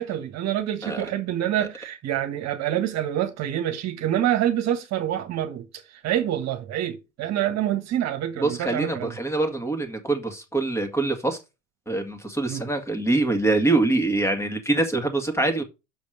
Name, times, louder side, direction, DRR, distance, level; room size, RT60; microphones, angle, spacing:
voice 1, 0.0-5.7 6.0-9.1 12.5-12.6, right 11 dB, 45° right, 1.5 m, -26 dB
voice 2, 8.4-11.4 11.9-15.6, right 2 dB, 5° left, 2.1 m, -24 dB
6.6 x 5.1 x 6.4 m
hypercardioid pair, 85°, 37 cm